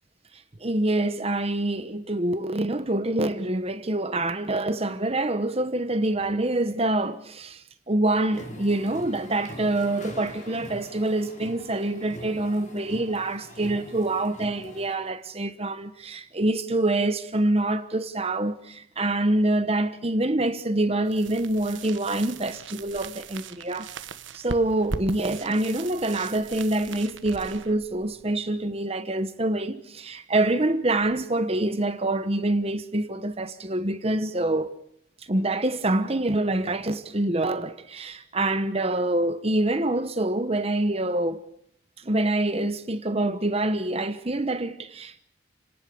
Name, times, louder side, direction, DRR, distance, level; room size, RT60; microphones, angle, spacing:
voice 1, 0.6-23.9 24.3-34.7 35.3-41.4 42.0-45.2, right 2 dB, 30° right, 1.1 m, -26 dB
sound 1, 8.2-14.9, equal, 40° left, 4.9 m, -43 dB
sound 2, 21.0-28.8, right 4 dB, 70° right, 1.3 m, -40 dB
29.5 x 18.5 x 6.9 m
head